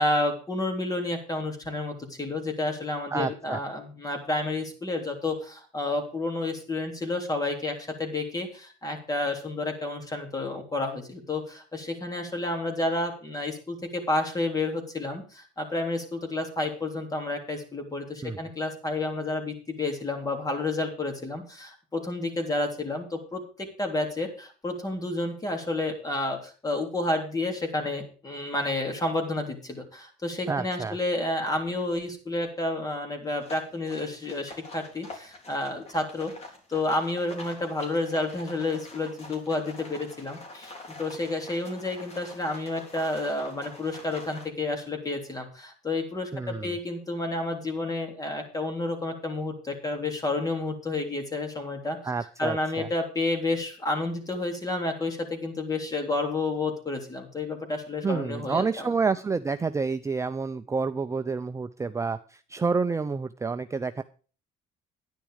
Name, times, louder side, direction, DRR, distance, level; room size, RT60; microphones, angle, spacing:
voice 1, 0.0-36.3 36.7-40.7 41.0-52.0 52.4-58.8, left 2 dB, 20° left, 4 dB, 3.4 m, -30 dB
voice 2, 3.1-3.6 18.2-18.4 30.5-31.0 46.3-46.7 52.0-52.9 58.0-64.0, right 4 dB, 15° right, 9 dB, 0.5 m, -29 dB
sound 1, 33.4-44.5, left 2 dB, 40° left, 3.6 m, -46 dB
10.5 x 10.0 x 5.1 m, 0.39 s
cardioid pair, 110°, 17 cm